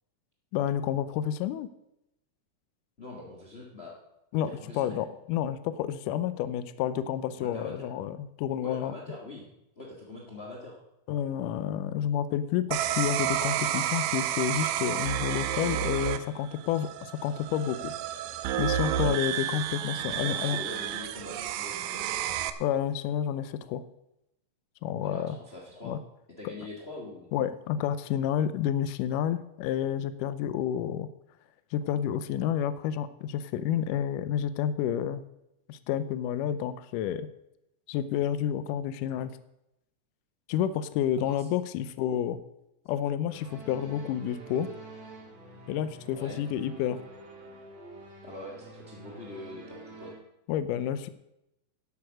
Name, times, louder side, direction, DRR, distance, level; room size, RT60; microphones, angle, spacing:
voice 1, 0.5-1.7 4.3-8.9 11.1-17.9 18.6-20.6 22.6-23.8 24.8-25.4 25.8-26.0 27.3-31.1 31.7-35.2 35.7-37.3 37.9-39.4 40.5-42.4 42.9-44.7 45.7-47.0 50.5-51.1, left 10 dB, 80° left, 14 dB, 2.1 m, -30 dB
voice 2, 3.0-3.9 4.4-5.0 7.4-7.9 8.6-9.5 9.8-10.8 20.2-22.1 25.0-26.0 26.4-27.3 41.2-41.5 46.1-46.4 48.2-50.1, left 2 dB, 45° left, -2 dB, 0.7 m, -43 dB
sound 1, 12.7-22.5, right 11 dB, 85° right, 2.3 m, -31 dB
sound 2, 43.3-50.1, right 2 dB, 55° right, 4.0 m, -48 dB
11.5 x 8.4 x 6.4 m, 0.86 s
omnidirectional pair, 3.9 m